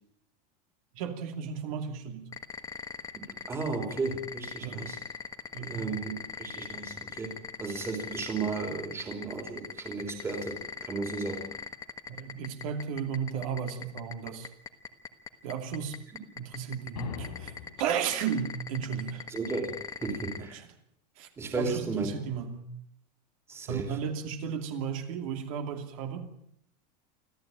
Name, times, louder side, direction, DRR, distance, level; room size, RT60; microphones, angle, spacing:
voice 1, 0.9-2.3 4.6-4.9 5.5-6.0 12.1-14.5 15.4-16.0 16.4-19.3 20.5-20.7 21.2-22.7 23.7-26.3, right 7 dB, 55° right, 6 dB, 2.8 m, -34 dB
sound 1, 2.3-20.4, left 6 dB, 15° left, 1.4 m, -39 dB
voice 2, 3.1-5.0 5.6-11.5 19.3-19.7 20.0-20.6 21.4-22.1 23.5-24.0, right 4 dB, 10° right, 4 dB, 3.1 m, -34 dB
sound 2, 17.0-18.0, left 9 dB, 85° left, 5.1 m, -40 dB
25.5 x 15.5 x 8.9 m, 0.73 s
supercardioid pair, 180°, 21 cm